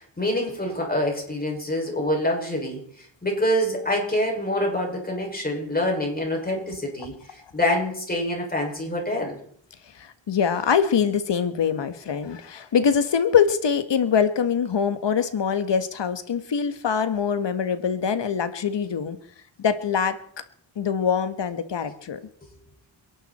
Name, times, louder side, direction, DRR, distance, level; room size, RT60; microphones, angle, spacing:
voice 1, 0.0-9.4, left 1 dB, 20° left, 0 dB, 6.2 m, -26 dB
voice 2, 10.0-19.2 19.6-20.2 20.7-22.2, left 7 dB, 65° left, 10 dB, 1.6 m, -23 dB
29.0 x 11.5 x 4.4 m, 0.62 s
wide cardioid pair, 130°, 46 cm